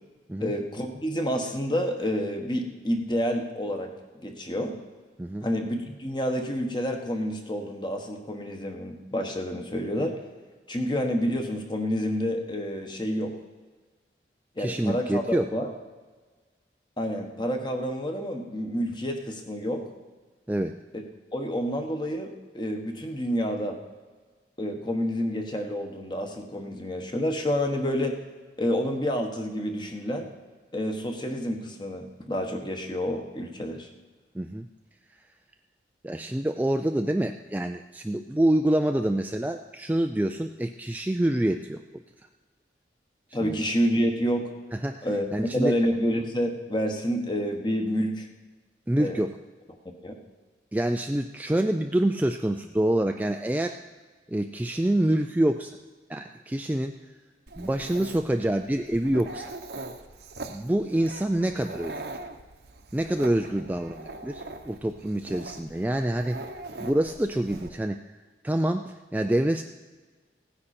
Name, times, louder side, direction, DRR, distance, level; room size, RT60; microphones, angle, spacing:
voice 1, 0.4-3.9 4.2-4.7 5.4-10.2 10.7-13.3 14.6-15.7 17.0-19.9 20.9-21.0 21.3-23.8 24.6-28.2 28.6-30.3 30.7-33.9 43.3-44.5 45.0-45.3 45.5-48.3 49.0-49.2 50.0-50.1, equal, 25° left, 3 dB, 1.3 m, -28 dB
voice 2, 14.6-15.5 20.5-20.8 34.3-34.7 36.0-41.8 43.4-43.5 44.7-45.8 48.9-49.3 50.7-53.8 54.3-55.8 56.1-56.9 57.6-59.5 60.5-62.0 62.9-66.4 66.8-68.0 68.4-69.6, right 1 dB, 10° right, 5 dB, 0.3 m, -26 dB
Dog, 57.5-67.7, right 2 dB, 65° right, 0.9 m, -41 dB
16.5 x 9.8 x 4.3 m, 1.4 s
head